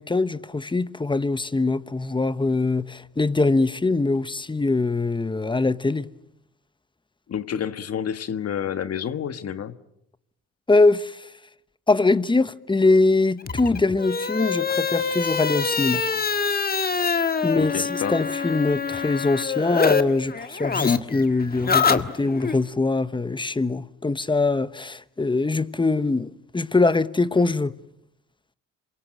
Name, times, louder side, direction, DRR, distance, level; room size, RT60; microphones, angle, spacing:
voice 1, 0.0-6.1 10.7-11.3 11.9-16.0 17.4-27.7, left 3 dB, 15° left, 1.1 m, -23 dB
voice 2, 7.3-9.8 17.5-18.2, left 8 dB, 55° left, 1.5 m, -29 dB
sound 1, 13.4-20.0 20.3-22.6, left 5 dB, 30° left, 1.7 m, -25 dB
27.0 x 23.5 x 9.0 m
cardioid pair, 90°, 30 cm